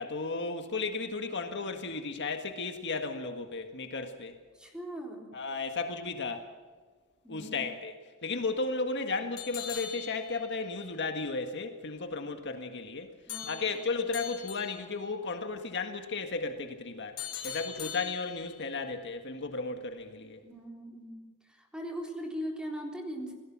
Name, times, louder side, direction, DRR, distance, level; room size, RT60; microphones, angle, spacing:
voice 1, 0.0-4.4 5.3-6.4 7.3-7.9 8.2-13.1 13.4-17.2 17.4-20.4, left 3 dB, 55° left, 6 dB, 1.7 m, -34 dB
voice 2, 4.5-5.3 7.2-7.7 13.3-13.7 20.4-23.3, equal, 5° right, 1 dB, 3.8 m, -40 dB
sound 1, 9.4-10.7 13.3-15.0 17.2-18.7, left 9 dB, 85° left, 4.0 m, -41 dB
27.5 x 18.0 x 6.2 m, 1.4 s
head